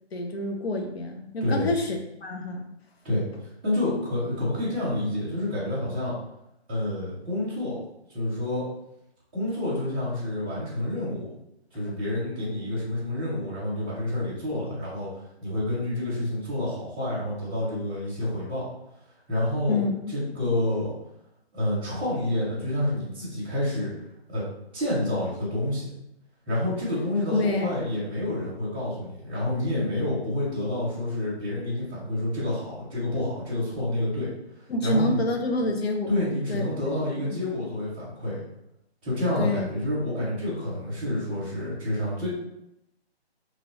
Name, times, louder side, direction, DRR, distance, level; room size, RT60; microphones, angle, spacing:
voice 1, 0.1-2.7 19.7-20.1 27.3-27.7 34.7-36.1 36.5-37.4 39.4-39.6, left 2 dB, 65° left, 3 dB, 0.7 m, -28 dB
voice 2, 3.6-6.1 6.7-7.8 8.1-8.7 9.3-11.3 11.7-18.7 19.3-19.8 20.1-20.9 21.5-23.9 24.3-24.4 24.7-25.9 26.5-34.3 34.8-35.2 36.1-38.4 39.0-42.3, left 1 dB, 10° right, -12 dB, 0.8 m, -28 dB
2.9 x 2.4 x 3.0 m, 0.84 s
hypercardioid pair, 175°, 33 cm